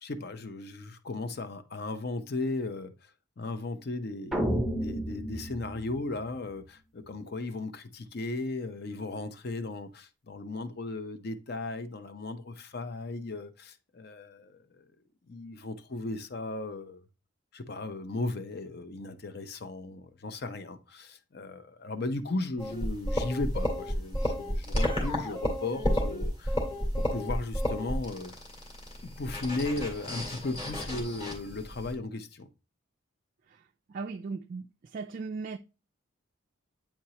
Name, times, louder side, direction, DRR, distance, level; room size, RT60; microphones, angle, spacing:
voice 1, 0.0-3.1 3.4-14.9 15.3-17.0 17.5-26.6 27.0-28.3 29.0-32.5, left 2 dB, 50° left, 0.6 m, -36 dB
sound 1, 4.3-6.6, equal, ahead, 0.6 m, -32 dB
sound 2, 22.6-31.9, equal, 30° left, 2.1 m, -32 dB
voice 2, 33.9-35.6, right 4 dB, 40° right, 0.3 m, -38 dB
8.7 x 4.4 x 2.8 m
head